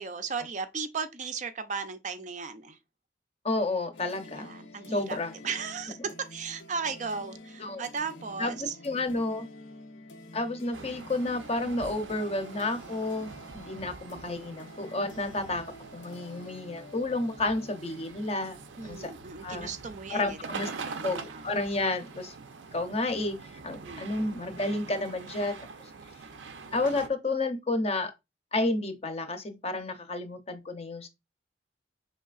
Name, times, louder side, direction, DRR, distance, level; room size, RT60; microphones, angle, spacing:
voice 1, 0.0-2.8 4.2-5.2 5.4-8.8 18.8-21.5 23.8-24.1, right 5 dB, 40° right, 0.5 m, -36 dB
voice 2, 3.4-4.5 4.9-5.3 7.6-7.8 8.4-9.5 10.3-15.6 15.9-18.6 18.8-19.1 19.4-19.7 20.1-20.7 21.0-22.3 22.7-23.4 23.6-25.6 26.7-28.1 28.5-31.1, left 2 dB, 35° left, 0.7 m, -31 dB
sound 1, 3.9-20.5, left 2 dB, 80° left, 0.6 m, -50 dB
sound 2, 10.7-27.1, right 4 dB, 90° right, 0.5 m, -44 dB
5.4 x 3.3 x 2.3 m
head